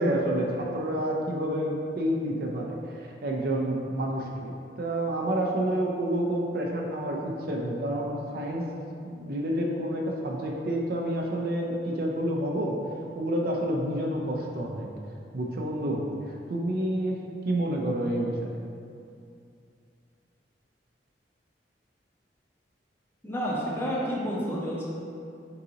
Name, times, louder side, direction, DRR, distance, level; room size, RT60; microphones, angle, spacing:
voice 1, 0.0-8.7 9.0-12.8 13.1-14.9 15.3-18.6, right 1 dB, 55° right, 0 dB, 0.5 m, -29 dB
voice 2, 23.2-24.8, equal, 15° left, -6 dB, 0.7 m, -30 dB
3.8 x 3.8 x 2.8 m, 2.4 s
head